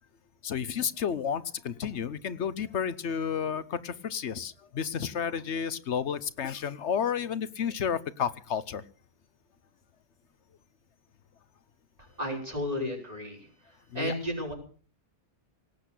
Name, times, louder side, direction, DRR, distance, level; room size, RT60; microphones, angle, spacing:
voice 1, 0.4-8.8 13.9-14.1, left 7 dB, 80° left, 15 dB, 1.2 m, -31 dB
voice 2, 12.2-14.5, left 1 dB, 35° right, 1 dB, 5.6 m, -33 dB
18.5 x 8.4 x 8.3 m, 0.43 s
omnidirectional pair, 1.2 m